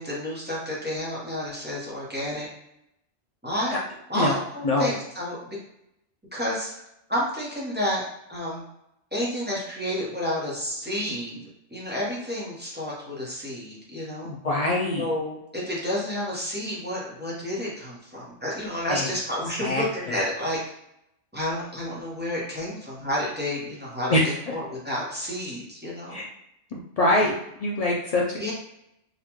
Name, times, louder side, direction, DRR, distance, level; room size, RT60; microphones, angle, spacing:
voice 1, 0.0-2.5 3.4-3.8 4.1-5.6 6.3-6.8 7.1-8.0 8.3-8.6 9.1-11.4 11.7-14.3 15.0-20.6 21.3-26.1 28.4-28.5, equal, 10° right, -7 dB, 0.8 m, -30 dB
voice 2, 14.2-15.1 18.9-19.1 19.6-20.2 24.1-24.5 26.1-26.3 26.7-27.3 27.6-28.5, left 1 dB, 80° left, -3 dB, 0.3 m, -24 dB
4.0 x 2.2 x 3.0 m, 0.81 s
omnidirectional pair, 1.2 m